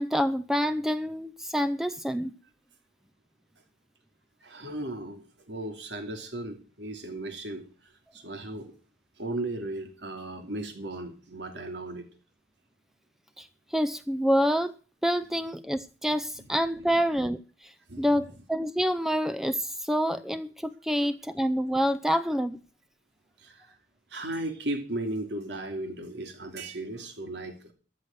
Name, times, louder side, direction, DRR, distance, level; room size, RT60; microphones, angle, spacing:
voice 1, 0.0-2.3 13.4-14.7 15.0-17.7 18.0-22.6, equal, ahead, 0.5 m, -27 dB
voice 2, 4.4-7.6 8.1-8.7 9.2-12.1 16.4-16.5 17.9-18.3 20.9-21.1 23.4-23.7 24.1-27.7, right 1 dB, 80° right, 2.8 m, -36 dB
14.0 x 6.6 x 7.9 m
head